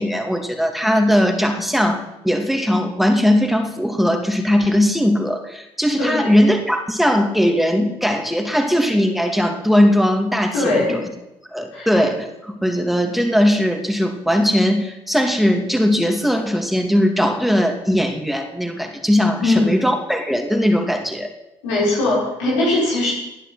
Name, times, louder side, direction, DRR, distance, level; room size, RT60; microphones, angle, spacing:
voice 1, 0.0-11.0 11.5-21.3, equal, ahead, 4 dB, 2.8 m, -19 dB
voice 2, 6.0-6.3 10.5-11.0 11.7-11.9 19.4-19.8 21.6-23.1, left 2 dB, 85° left, -4 dB, 5.9 m, -20 dB
19.5 x 11.0 x 6.0 m, 0.91 s
hypercardioid pair, 45°, 15 cm